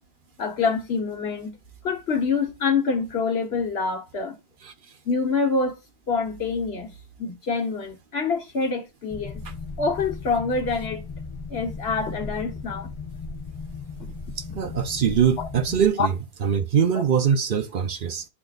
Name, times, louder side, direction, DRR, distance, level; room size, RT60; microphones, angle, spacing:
voice 1, 0.4-1.6 1.8-4.4 5.0-5.8 6.1-6.9 7.2-9.4 9.8-11.1 11.5-12.9 14.0-14.1 15.4-15.5 16.0-16.1, left 4 dB, 80° left, 1.4 m, -26 dB
Roomtone Bathroom Ventilation, 9.1-15.9, left 4 dB, 35° left, 0.7 m, -36 dB
voice 2, 14.4-16.1 16.4-18.3, right 8 dB, 60° right, 0.8 m, -23 dB
11.0 x 3.9 x 2.4 m
omnidirectional pair, 1.1 m